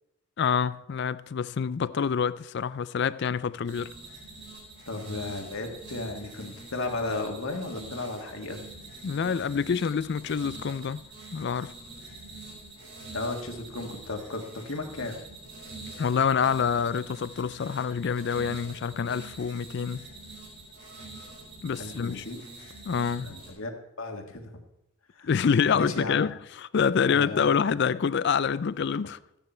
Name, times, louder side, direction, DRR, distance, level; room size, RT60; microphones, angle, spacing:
voice 1, 0.4-3.9 9.0-11.0 11.3-11.7 16.0-20.1 21.6-22.2 22.9-23.4 25.2-29.2, left 6 dB, 50° left, 0.4 m, -27 dB
sound 1, 3.6-23.5, right 2 dB, 50° right, 4.4 m, -45 dB
voice 2, 4.9-8.6 13.1-15.2 21.8-22.4 23.2-24.6 25.2-25.3 25.7-26.2 27.1-27.5, left 2 dB, 70° left, 1.8 m, -34 dB
14.5 x 9.8 x 4.4 m
head